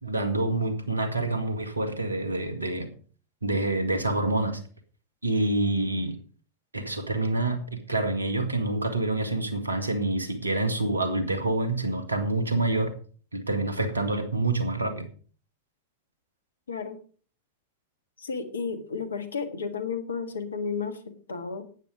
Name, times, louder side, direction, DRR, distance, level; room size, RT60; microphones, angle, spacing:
voice 1, 0.0-2.9 3.4-4.6 5.2-6.2 6.7-12.9 13.3-15.1, right 2 dB, 80° right, 9 dB, 1.9 m, -27 dB
voice 2, 16.7-17.0 18.2-21.7, left 5 dB, 70° left, 9 dB, 1.7 m, -33 dB
12.0 x 9.2 x 5.1 m, 0.41 s
figure-of-eight pair, 90°, 0 cm